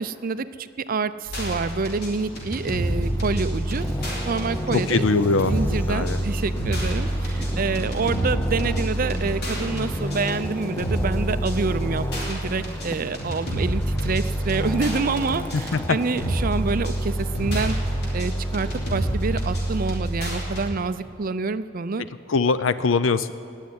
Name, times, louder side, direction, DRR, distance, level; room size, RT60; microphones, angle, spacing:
voice 1, 0.0-3.9 4.3-5.0 5.3-17.8 18.1-22.0, right 4 dB, 45° right, 12 dB, 0.5 m, -27 dB
sound 1, 1.2-20.7, right 1 dB, 55° left, 4.1 m, -27 dB
Traffic noise roadway noise, 1.5-20.0, left 1 dB, 10° left, 0.8 m, -34 dB
voice 2, 4.7-5.5 5.9-6.2 15.5-16.0 22.3-23.3, left 4 dB, 85° left, 14 dB, 0.6 m, -21 dB
19.0 x 7.3 x 9.5 m, 2.5 s
head